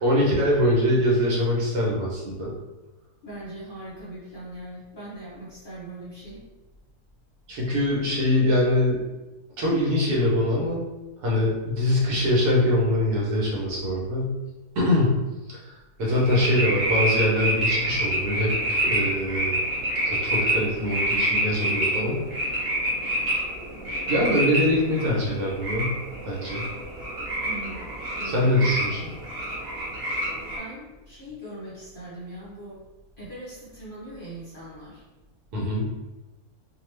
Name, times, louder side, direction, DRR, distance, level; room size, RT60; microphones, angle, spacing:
voice 1, 0.0-2.5 7.5-9.0 9.6-10.8 11.2-14.3 14.7-15.2 15.5-19.6 20.0-22.2 24.1-25.9 26.2-26.6 28.2-29.1 35.5-35.9, left 1 dB, 75° right, -4 dB, 1.3 m, -23 dB
voice 2, 3.2-6.4 22.7-22.9 27.5-27.9 28.2-28.5 30.3-32.8 33.2-35.0, right 1 dB, 45° left, -8 dB, 0.8 m, -40 dB
sound 1, 16.0-30.6, right 1 dB, 60° right, 1.2 m, -27 dB
2.8 x 2.2 x 3.1 m, 1.1 s
omnidirectional pair, 1.7 m